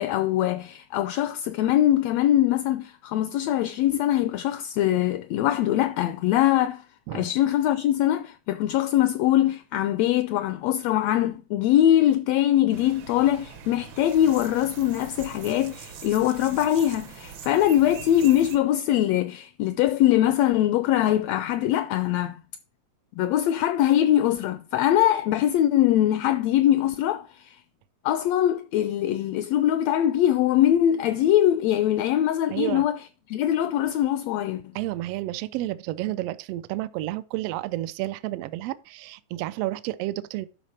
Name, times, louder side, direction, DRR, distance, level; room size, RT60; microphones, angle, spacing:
voice 1, 0.0-6.8 7.1-22.4 23.2-27.6 28.0-33.0 33.3-34.7, left 12 dB, 80° left, 1.6 m, -22 dB
sound 1, 12.7-18.6, right 7 dB, 70° right, 1.2 m, -42 dB
voice 2, 32.5-32.9 34.7-40.5, right 16 dB, 90° right, 1.4 m, -31 dB
11.5 x 4.1 x 4.3 m
omnidirectional pair, 3.4 m